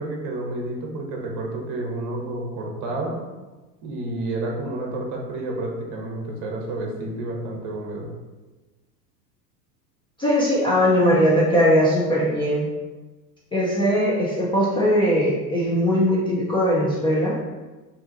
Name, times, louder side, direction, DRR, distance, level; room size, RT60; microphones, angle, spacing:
voice 1, 0.0-3.2 3.8-8.1, right 2 dB, 35° right, 0 dB, 0.9 m, -30 dB
voice 2, 10.2-12.7 13.5-17.3, equal, 10° left, -7 dB, 0.4 m, -20 dB
2.8 x 2.3 x 3.8 m, 1.2 s
hypercardioid pair, 90°, 49 cm